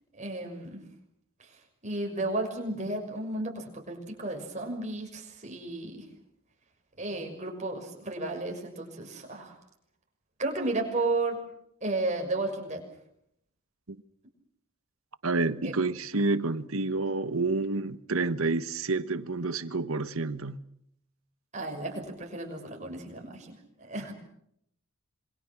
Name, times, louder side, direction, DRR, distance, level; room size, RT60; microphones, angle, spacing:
voice 1, 0.1-0.8 1.4-1.5 1.8-6.1 7.0-9.5 10.4-11.4 11.8-12.8 15.6-15.7 21.5-24.1, right 2 dB, 35° right, 6.2 m, -33 dB
voice 2, 15.2-20.6, right 3 dB, 75° right, 1.3 m, -29 dB
27.0 x 24.5 x 6.1 m
head